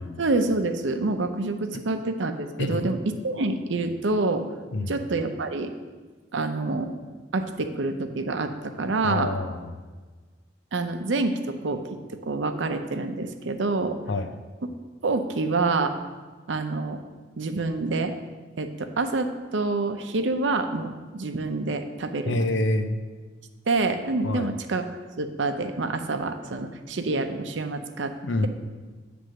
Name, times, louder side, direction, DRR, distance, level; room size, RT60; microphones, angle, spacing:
voice 1, 0.0-3.0 3.2-4.4 4.9-5.7 6.3-6.9 7.3-9.3 10.7-11.8 12.2-14.0 15.0-16.0 16.5-17.0 17.4-18.1 18.6-22.3 23.7-24.9 25.2-28.1, right 3 dB, 90° right, 7 dB, 0.6 m, -27 dB
voice 2, 9.0-9.8 14.1-14.3 22.3-23.0 24.2-24.5 28.2-28.5, left 2 dB, 85° left, 7 dB, 0.6 m, -27 dB
9.1 x 3.4 x 6.3 m, 1.4 s
head